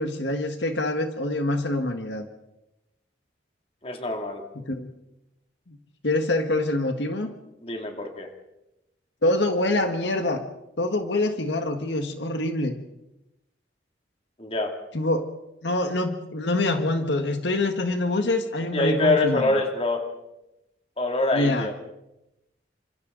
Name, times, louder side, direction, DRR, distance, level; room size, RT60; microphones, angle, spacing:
voice 1, 0.0-2.3 4.5-4.9 5.7-5.8 6.0-7.3 9.2-10.4 10.8-12.8 14.9-15.3 15.6-19.6 21.3-21.7, left 2 dB, 75° left, 6 dB, 1.6 m, -25 dB
voice 2, 3.8-4.4 7.6-8.3 14.4-14.7 18.7-20.1 21.0-21.7, left 2 dB, 30° left, 3 dB, 2.7 m, -25 dB
28.5 x 26.5 x 4.0 m, 0.93 s
head